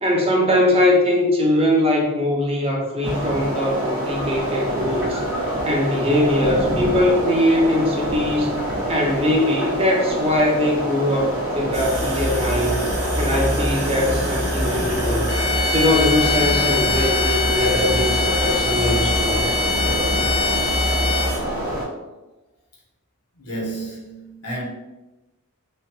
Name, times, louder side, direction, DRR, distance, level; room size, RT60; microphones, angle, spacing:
voice 1, 0.0-5.2 5.6-8.5 8.9-12.8 13.2-15.3 15.7-19.5, left 1 dB, 25° right, 0.5 m, -21 dB
sound 1, 3.0-21.8, right 1 dB, 65° right, 1.2 m, -26 dB
sound 2, 11.7-21.4, equal, 90° right, 0.8 m, -26 dB
sound 3, 15.3-21.5, left 5 dB, 25° left, 0.4 m, -24 dB
voice 2, 23.3-24.6, right 2 dB, 85° left, 1.0 m, -31 dB
3.0 x 2.2 x 2.7 m
head